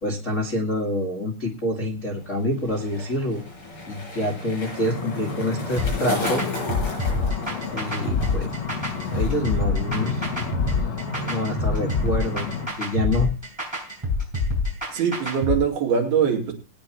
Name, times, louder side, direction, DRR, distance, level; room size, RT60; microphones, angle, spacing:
voice 1, 0.0-3.4 3.8-6.4 7.7-8.5 9.1-10.3 11.3-13.3, left 1 dB, 80° left, -3 dB, 0.6 m, -26 dB
Skateboard, 2.1-9.6 9.9-10.4, left 2 dB, 30° left, 6.8 m, -34 dB
sound 1, 4.8-12.7, left 5 dB, 60° left, 3.5 m, -31 dB
sound 2, 5.8-15.6, left 3 dB, 5° right, 4.5 m, -26 dB
voice 2, 14.9-16.5, right 7 dB, 70° right, 1 dB, 4.3 m, -22 dB
20.5 x 9.3 x 3.0 m, 0.31 s
omnidirectional pair, 4.7 m